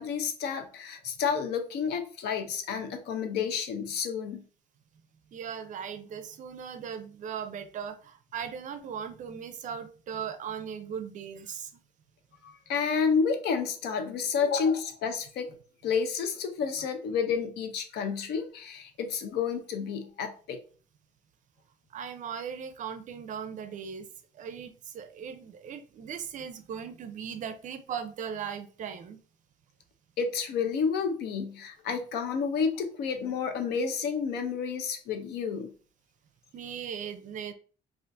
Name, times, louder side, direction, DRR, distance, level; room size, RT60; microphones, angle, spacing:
voice 1, 0.0-4.4 12.4-15.5 15.8-20.6 30.2-35.7, left 6 dB, 75° left, 7 dB, 0.6 m, -30 dB
voice 2, 5.3-11.8 21.9-24.1 24.3-29.2 36.5-37.5, right 7 dB, 50° right, 10 dB, 0.5 m, -38 dB
2.5 x 2.5 x 3.3 m, 0.40 s
cardioid pair, 110°, 17 cm